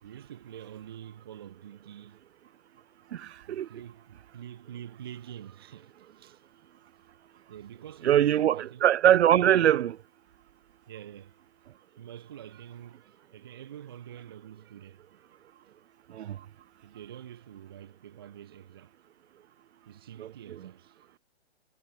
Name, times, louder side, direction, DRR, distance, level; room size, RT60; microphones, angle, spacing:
voice 1, 0.0-2.2 3.5-6.8 7.5-8.8 10.9-11.4 12.0-15.3 16.8-18.9 19.8-21.2, right 10 dB, 25° right, 0.5 m, -46 dB
voice 2, 3.1-3.7 8.0-10.0 16.1-16.4 20.2-20.6, right 11 dB, 80° right, 0.5 m, -23 dB
hypercardioid pair, 160°, 33 cm